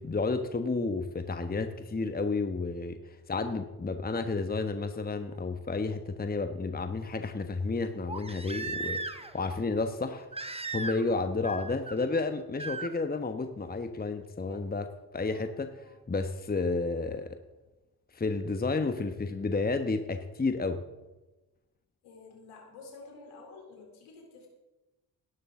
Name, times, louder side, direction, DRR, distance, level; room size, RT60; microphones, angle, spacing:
voice 1, 0.0-10.3 10.7-17.4 18.1-20.8, left 3 dB, 20° left, 8 dB, 1.1 m, -31 dB
Crying sobbing, 5.3-5.4 8.1-9.4 10.3-11.2 11.4-12.0 12.6-12.9 14.5-14.6, right 3 dB, 10° right, 1.1 m, -37 dB
voice 2, 22.0-24.5, left 3 dB, 75° left, 1 dB, 3.7 m, -50 dB
17.5 x 11.0 x 3.8 m, 1.1 s
hypercardioid pair, 45°, 49 cm